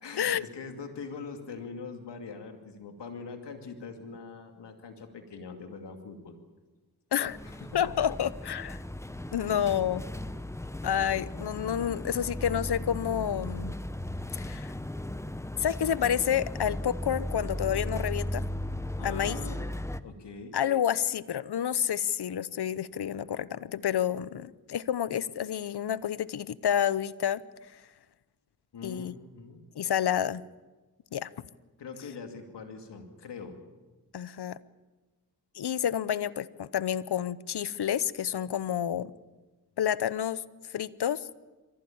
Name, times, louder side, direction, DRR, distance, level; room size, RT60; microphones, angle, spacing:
voice 1, 0.0-6.4 7.4-7.9 9.4-9.5 19.0-19.7 20.0-20.6 28.7-29.6 31.8-33.6, left 4 dB, 90° left, 5 dB, 2.6 m, -42 dB
sound 1, 7.2-20.0, left 1 dB, 5° left, 1.0 m, -36 dB
voice 2, 7.7-8.8 9.3-10.0 10.8-13.7 14.4-14.7 15.6-18.4 19.0-19.4 20.5-27.4 27.7-27.8 28.8-29.1 29.8-30.4 31.1-31.3 34.1-34.6 35.5-39.1 39.8-41.3, left 9 dB, 70° left, 18 dB, 0.9 m, -29 dB
23.5 x 15.0 x 8.7 m, 1.2 s
cardioid pair, 45°, 41 cm